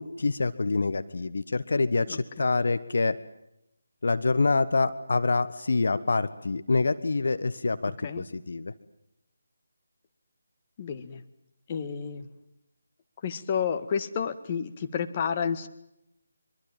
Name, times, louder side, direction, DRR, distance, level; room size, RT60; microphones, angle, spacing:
voice 1, 0.0-3.2 4.0-8.7, left 3 dB, 60° left, 12 dB, 1.4 m, -26 dB
voice 2, 10.8-11.2 11.7-12.3 13.2-15.7, left 7 dB, 30° left, 8 dB, 1.9 m, -30 dB
25.0 x 24.0 x 7.5 m, 0.85 s
figure-of-eight pair, 155°, 0 cm